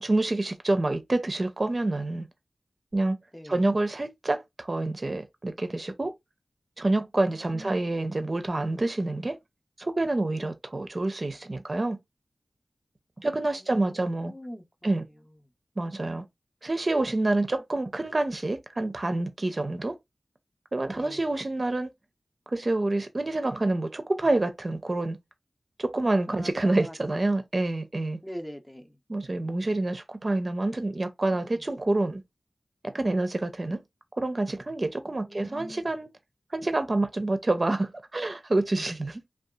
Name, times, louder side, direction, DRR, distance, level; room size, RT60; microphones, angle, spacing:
voice 1, 0.0-2.3 2.9-3.2 3.5-6.1 6.8-9.4 9.8-12.0 13.2-14.3 14.8-15.0 15.8-16.2 16.6-19.9 20.7-21.9 22.5-25.2 25.8-28.2 29.1-32.2 32.8-33.8 34.2-36.1 36.5-39.2, right 2 dB, 45° right, 0.5 m, -27 dB
voice 2, 3.3-3.7 7.3-8.0 13.2-15.4 20.9-21.2 26.3-27.3 28.2-29.0 31.3-31.6 35.0-35.8, equal, 10° left, 0.7 m, -44 dB
2.7 x 2.3 x 2.3 m
wide cardioid pair, 50°, 0 cm